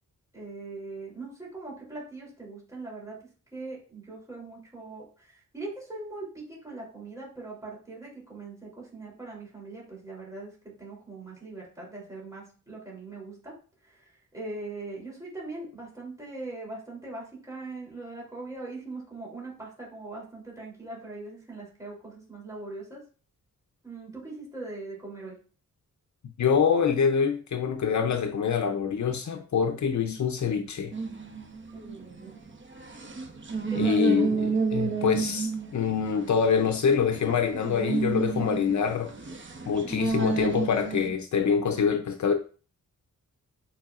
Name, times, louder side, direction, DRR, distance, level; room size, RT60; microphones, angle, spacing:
voice 1, 0.3-3.2 3.5-13.5 13.8-23.0 23.8-25.4 31.7-32.4 33.6-34.4, right 2 dB, 10° right, -5 dB, 3.3 m, -41 dB
voice 2, 26.4-30.9 33.8-39.1 39.7-42.3, left 6 dB, 60° left, 6 dB, 0.7 m, -25 dB
sound 1, 30.9-41.1, right 5 dB, 35° right, 0.9 m, -31 dB
8.9 x 4.8 x 2.5 m, 0.39 s
wide cardioid pair, 170°, 32 cm